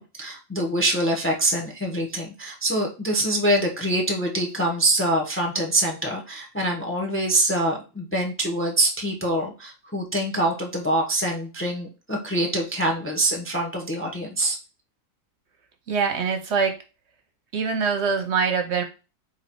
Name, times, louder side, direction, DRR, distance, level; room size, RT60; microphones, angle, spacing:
voice 1, 0.0-14.6, right 1 dB, 10° left, 1 dB, 0.7 m, -25 dB
voice 2, 15.9-16.7 17.5-18.8, right 5 dB, 60° right, 5 dB, 0.9 m, -23 dB
4.0 x 3.0 x 4.4 m, 0.32 s
omnidirectional pair, 1.4 m